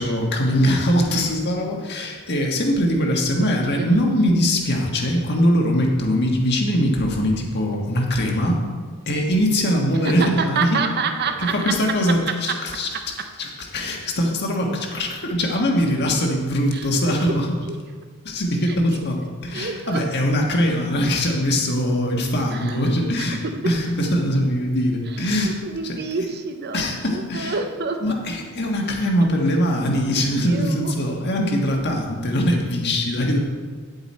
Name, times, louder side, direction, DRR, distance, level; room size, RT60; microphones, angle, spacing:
voice 1, 0.0-8.6 9.1-10.8 11.4-12.9 13.4-17.5 18.2-25.5 25.8-26.3 26.7-27.6 28.0-33.4, equal, 50° left, 1 dB, 1.5 m, -22 dB
voice 2, 3.4-3.9 10.0-11.7 12.3-12.5 16.7-16.8 19.5-20.0 22.5-22.6 25.4-26.8 27.1-28.0 30.4-30.9, right 5 dB, 50° right, 6 dB, 0.8 m, -27 dB
9.7 x 8.0 x 4.3 m, 1.6 s
head